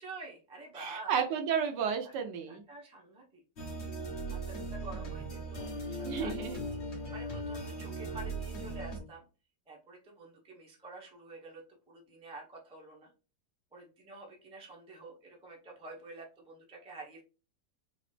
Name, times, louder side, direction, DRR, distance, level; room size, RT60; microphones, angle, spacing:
voice 1, 0.0-1.1 2.0-2.1 2.5-3.4 4.3-9.2 9.7-13.1 13.7-17.2, right 2 dB, 5° right, -2 dB, 0.5 m, -49 dB
voice 2, 0.7-2.6 6.0-6.6, right 7 dB, 75° right, 5 dB, 1.2 m, -32 dB
sound 1, 3.6-9.0, right 1 dB, 45° left, 1.1 m, -38 dB
3.9 x 2.4 x 3.2 m, 0.34 s
omnidirectional pair, 2.0 m